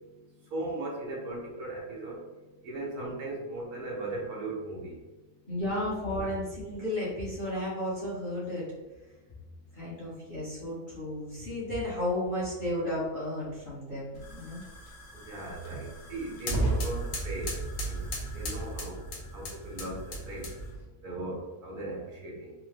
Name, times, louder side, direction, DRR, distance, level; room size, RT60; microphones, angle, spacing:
voice 1, 0.5-2.2 2.6-5.0 15.1-17.6 17.8-18.1 18.3-19.0 19.3-20.5 21.0-22.5, right 2 dB, 75° right, -2 dB, 1.3 m, -38 dB
voice 2, 5.5-8.7 9.7-14.6, left 1 dB, 35° left, -8 dB, 1.0 m, -33 dB
sound 1, 14.1-20.8, right 1 dB, 65° left, 1.0 m, -35 dB
3.6 x 2.0 x 3.2 m, 1.2 s
omnidirectional pair, 1.6 m